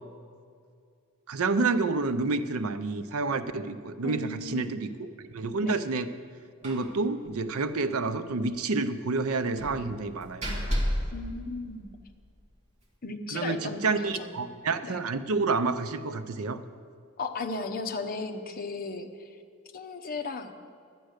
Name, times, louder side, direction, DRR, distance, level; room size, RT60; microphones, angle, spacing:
voice 1, 1.3-4.9 5.3-6.1 6.6-10.4 13.3-16.6, right 3 dB, 75° right, 11 dB, 0.6 m, -29 dB
voice 2, 4.0-4.8 5.6-5.8 11.1-11.9 13.0-14.5 14.8-15.0 17.2-19.3 19.7-20.5, left 3 dB, 40° left, 5 dB, 0.8 m, -36 dB
Slam, 6.6-7.0 7.2-7.3 7.7-7.8 9.6-12.2, equal, 30° right, 1.8 m, -32 dB
11.5 x 9.2 x 6.5 m, 2.2 s
head